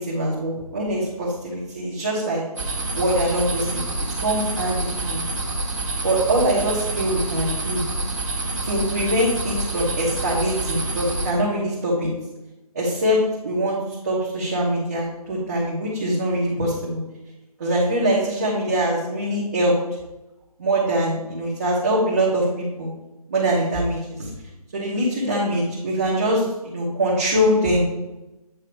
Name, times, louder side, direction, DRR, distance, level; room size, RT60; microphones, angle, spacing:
voice 1, 0.1-2.4 2.9-3.8 4.2-5.2 6.0-7.8 8.6-12.1 12.7-13.8 14.0-17.0 17.6-19.7 20.6-22.9 23.3-24.3 24.7-27.8, right 1 dB, 25° right, -7 dB, 1.2 m, -23 dB
sound 1, 2.6-11.3, right 2 dB, 50° right, 1.5 m, -27 dB
7.9 x 3.0 x 4.6 m, 0.98 s
figure-of-eight pair, 160°, 20 cm